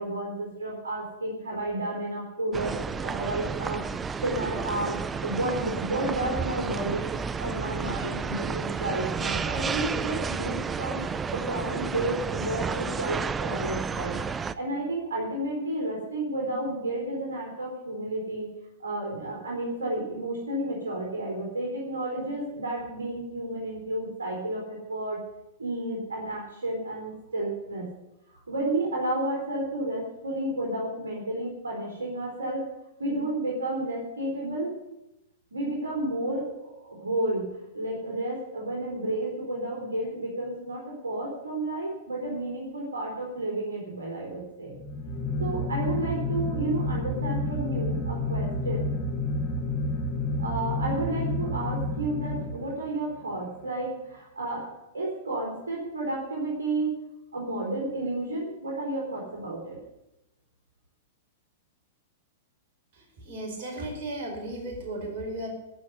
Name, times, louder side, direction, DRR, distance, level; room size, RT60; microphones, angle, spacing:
voice 1, 0.0-2.7 3.0-3.8 4.2-7.1 7.4-11.0 11.3-14.2 14.5-18.5 18.8-25.2 25.6-27.9 28.5-32.7 33.0-34.8 35.5-44.7 45.4-48.9 50.4-54.7 54.9-57.0 57.3-59.8, right 2 dB, 80° right, -2 dB, 4.2 m, -31 dB
sound 1, 2.5-14.5, right 5 dB, 15° right, 0.5 m, -31 dB
sound 2, 44.7-53.0, left 1 dB, 35° left, 3.9 m, -30 dB
voice 2, 63.2-65.5, right 1 dB, 55° right, 1 dB, 4.9 m, -35 dB
14.0 x 6.4 x 9.6 m, 0.91 s
figure-of-eight pair, 105°, 0 cm